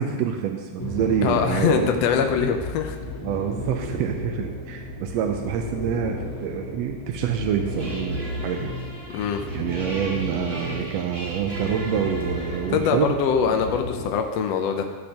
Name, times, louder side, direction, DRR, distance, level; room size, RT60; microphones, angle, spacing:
voice 1, 0.0-1.9 3.2-8.7 9.5-13.2, right 8 dB, 80° right, 4 dB, 1.5 m, -27 dB
sound 1, 0.8-14.1, left 1 dB, 50° left, 2.1 m, -33 dB
voice 2, 1.2-3.0 9.1-9.4 12.7-14.8, left 7 dB, 75° left, 5 dB, 1.6 m, -23 dB
sound 2, 7.7-12.9, right 1 dB, 35° right, 1.5 m, -39 dB
13.5 x 6.4 x 2.9 m, 1.4 s
omnidirectional pair, 3.4 m